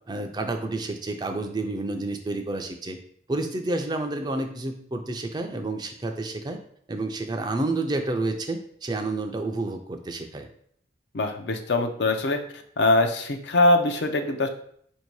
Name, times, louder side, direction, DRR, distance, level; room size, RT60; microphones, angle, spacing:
voice 1, 0.1-3.0 3.3-6.6 6.9-10.5, right 2 dB, 25° right, 5 dB, 0.4 m, -29 dB
voice 2, 11.1-12.4 12.8-14.5, left 2 dB, 65° left, 5 dB, 0.5 m, -22 dB
4.3 x 2.7 x 4.6 m, 0.64 s
head